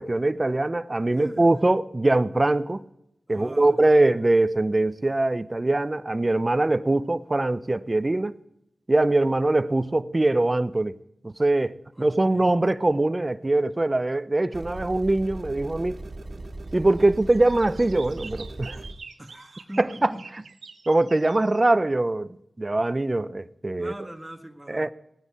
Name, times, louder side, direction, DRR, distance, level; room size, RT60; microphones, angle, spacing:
voice 1, 0.0-2.8 3.3-8.3 8.9-11.0 11.2-16.0 16.7-18.8 19.8-20.1 20.9-23.9 24.7-24.9, right 2 dB, 35° right, 0.7 m, -22 dB
voice 2, 1.2-1.7 3.3-3.8 11.9-12.5 19.2-20.3 23.8-24.9, right 1 dB, 15° right, 1.7 m, -42 dB
sound 1, 14.5-18.9, right 2 dB, 65° right, 1.9 m, -38 dB
sound 2, 17.0-21.6, right 5 dB, 90° right, 0.9 m, -46 dB
17.5 x 9.8 x 4.8 m
cardioid pair, 40°, 0 cm